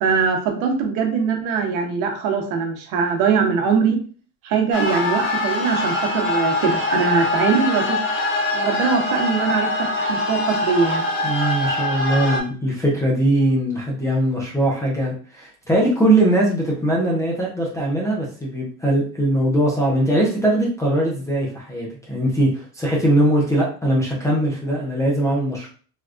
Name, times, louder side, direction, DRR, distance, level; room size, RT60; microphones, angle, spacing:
voice 1, 0.0-4.0 4.4-8.0 8.5-11.1, right 5 dB, 60° right, 3 dB, 0.8 m, -21 dB
sound 1, 4.7-12.4, left 2 dB, 35° left, 1.1 m, -23 dB
voice 2, 11.2-25.7, right 1 dB, 10° left, -3 dB, 0.4 m, -20 dB
3.4 x 2.3 x 2.4 m, 0.41 s
cardioid pair, 145°, 35 cm